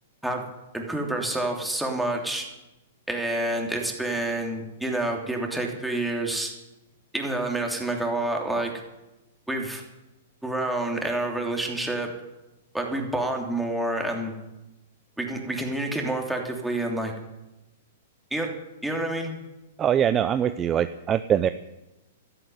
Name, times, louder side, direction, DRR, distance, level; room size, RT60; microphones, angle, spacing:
voice 1, 0.7-2.5 3.1-6.5 7.1-8.7 9.5-9.8 10.4-12.1 12.7-14.3 15.2-17.1 18.3-18.5 18.8-19.3, right 1 dB, 5° right, 1 dB, 3.2 m, -28 dB
voice 2, 19.8-21.5, right 9 dB, 25° right, 12 dB, 0.6 m, -23 dB
13.0 x 11.0 x 9.4 m, 1.0 s
hypercardioid pair, 120°, 0 cm